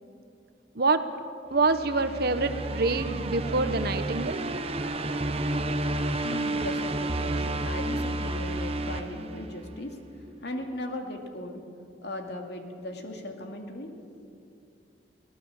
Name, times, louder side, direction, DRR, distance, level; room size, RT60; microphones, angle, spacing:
voice 1, 1.5-4.4, right 3 dB, 55° right, 10 dB, 1.1 m, -26 dB
sound 1, 1.6-9.9, right 2 dB, 35° right, 1.0 m, -31 dB
voice 2, 5.3-11.6 12.0-14.3, left 1 dB, 65° left, 3 dB, 2.6 m, -38 dB
24.5 x 18.0 x 7.3 m, 2.4 s
head